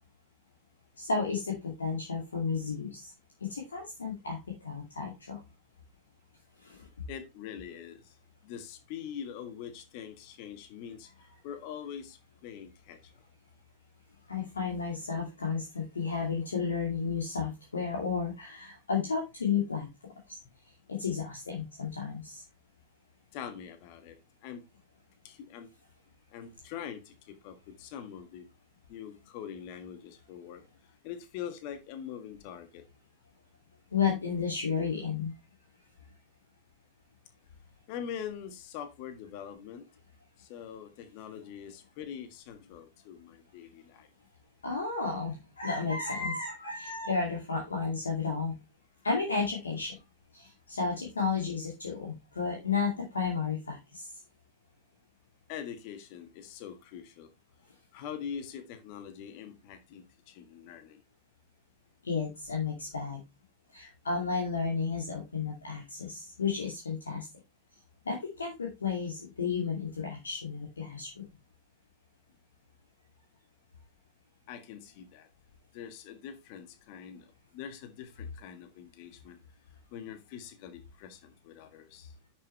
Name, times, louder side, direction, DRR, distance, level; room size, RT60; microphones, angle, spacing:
voice 1, 1.0-3.1 3.5-4.4 4.6-5.4 6.6-6.9 14.3-19.9 20.9-22.4 33.9-35.3 44.6-48.6 49.0-49.9 50.3-54.1 62.0-63.2 63.7-67.3 68.0-71.2, left 5 dB, 75° left, 0 dB, 2.4 m, -32 dB
voice 2, 7.1-8.1 8.4-11.1 11.4-13.0 23.3-24.2 24.4-24.6 25.2-25.7 26.3-28.4 28.9-30.6 31.0-32.8 37.9-39.9 40.4-44.1 55.5-57.3 57.9-61.0 74.5-75.3 75.7-79.4 79.9-82.1, left 8 dB, 45° left, 9 dB, 1.6 m, -43 dB
10.5 x 6.6 x 3.2 m, 0.24 s
figure-of-eight pair, 90°, 0 cm